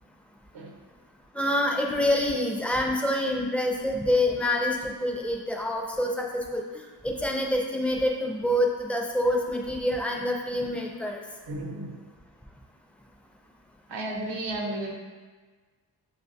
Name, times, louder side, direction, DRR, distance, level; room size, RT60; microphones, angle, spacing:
voice 1, 1.3-6.6 7.0-11.2, left 1 dB, 5° left, 0 dB, 0.3 m, -26 dB
voice 2, 11.5-12.0 13.9-14.9, right 1 dB, 85° right, 0 dB, 0.8 m, -33 dB
6.4 x 2.2 x 2.6 m, 1.4 s
wide cardioid pair, 120°, 41 cm